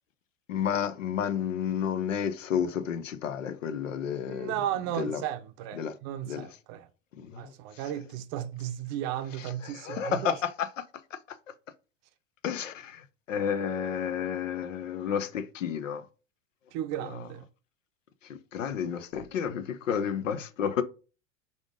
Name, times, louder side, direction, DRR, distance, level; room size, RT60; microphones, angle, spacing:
voice 1, 0.5-4.5 4.9-5.2 5.7-5.9 6.3-6.5 7.2-7.5 9.4-10.8 11.1-11.2 12.4-16.0 17.0-17.2 18.2-20.8, left 8 dB, 75° left, 0.7 m, -31 dB
voice 2, 4.3-6.9 7.4-10.3 16.7-17.4, right 11 dB, 40° right, 0.6 m, -35 dB
3.8 x 3.6 x 3.6 m
figure-of-eight pair, 85°, 38 cm